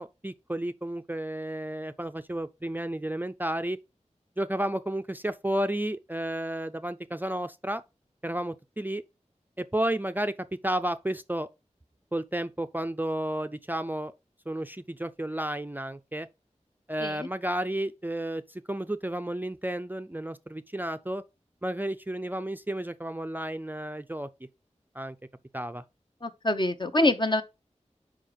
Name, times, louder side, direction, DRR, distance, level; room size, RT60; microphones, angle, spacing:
voice 1, 0.0-3.8 4.4-7.8 8.2-9.0 9.6-10.3 10.6-11.5 12.1-14.1 14.5-16.3 16.9-21.2 21.6-24.3 24.9-25.2 25.5-25.8, right 1 dB, 15° right, 0.4 m, -32 dB
voice 2, 26.2-27.4, left 2 dB, 40° left, 0.9 m, -25 dB
5.5 x 5.0 x 5.1 m
wide cardioid pair, 55°, 12 cm